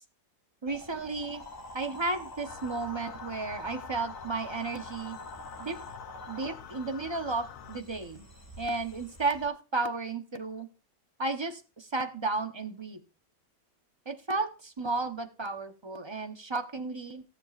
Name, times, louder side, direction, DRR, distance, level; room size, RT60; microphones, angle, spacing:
voice 1, 0.6-1.4 1.7-5.2 5.6-5.8 6.3-8.3 8.6-10.7 11.2-13.0 14.1-17.2, right 3 dB, 25° right, 7 dB, 0.6 m, -33 dB
sound 1, 0.7-9.5, left 1 dB, 15° left, 1.7 m, -46 dB
sound 2, 2.5-7.8, left 11 dB, 85° left, 1.1 m, -48 dB
16.5 x 7.6 x 2.4 m, 0.33 s
omnidirectional pair, 1.6 m